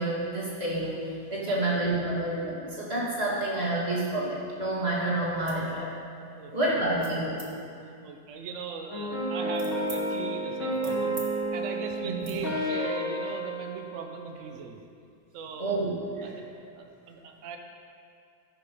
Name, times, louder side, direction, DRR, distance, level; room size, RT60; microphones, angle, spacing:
voice 1, 0.0-5.9 6.5-7.4 12.0-12.1 15.6-16.3, right 1 dB, 30° right, -6 dB, 2.7 m, -29 dB
sound 1, 5.5-5.7 6.1-6.4 7.0-7.5 8.2-10.0 10.4-11.3 11.6-11.8 12.2-12.4, right 4 dB, 45° right, 1.8 m, -47 dB
voice 2, 6.4-6.7 8.0-11.2 11.5-14.8 15.3-15.8 16.2-16.5 16.7-17.6, right 5 dB, 75° right, 4 dB, 0.7 m, -39 dB
sound 2, 8.9-14.5, right 1 dB, 85° left, 3.3 m, -31 dB
14.5 x 6.8 x 5.4 m, 2.5 s
omnidirectional pair, 2.2 m